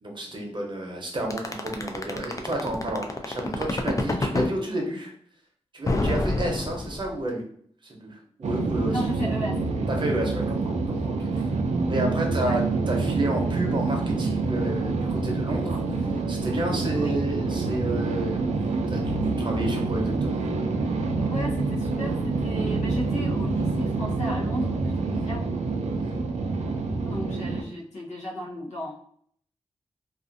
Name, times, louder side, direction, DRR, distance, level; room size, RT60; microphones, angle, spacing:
voice 1, 0.0-5.1 5.7-7.4 7.8-9.0 9.9-11.5 11.9-12.6 12.9-18.4 18.9-19.0 19.4-20.4 25.1-25.4 26.0-26.2, right 1 dB, 45° right, 0 dB, 0.7 m, -31 dB
sound 1, 1.3-4.5 5.9-7.3, left 2 dB, 30° left, 0.3 m, -26 dB
sound 2, 8.4-27.6, right 3 dB, 80° right, 0.4 m, -27 dB
voice 2, 8.9-9.6 12.4-12.6 16.9-17.2 21.2-25.4 27.0-28.9, left 1 dB, 90° left, -2 dB, 0.7 m, -34 dB
2.5 x 2.4 x 2.5 m, 0.62 s
wide cardioid pair, 105°, 12 cm